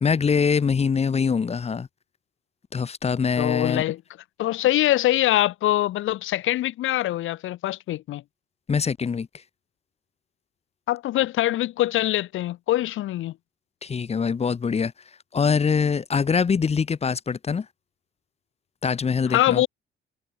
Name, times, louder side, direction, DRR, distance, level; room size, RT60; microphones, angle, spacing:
voice 1, 0.0-1.9 2.7-3.8 8.7-9.4 13.8-14.9 15.3-17.7 18.8-19.6, left 6 dB, 30° left, 0.9 m, -23 dB
voice 2, 3.4-4.0 4.4-8.2 10.9-13.4 19.3-19.7, left 14 dB, 80° left, 1.6 m, -23 dB
cardioid pair, 90°, 20 cm